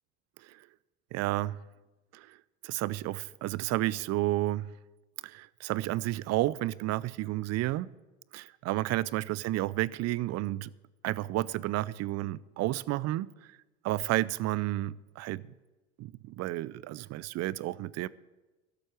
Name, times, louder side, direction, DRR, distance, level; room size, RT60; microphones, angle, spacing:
voice 1, 1.1-1.6 2.1-2.4 2.6-4.7 5.2-7.9 8.3-10.7 11.0-13.3 13.8-15.4 16.0-18.1, right 16 dB, 50° right, 0.5 m, -31 dB
13.5 x 7.8 x 8.1 m
hypercardioid pair, 80°, 33 cm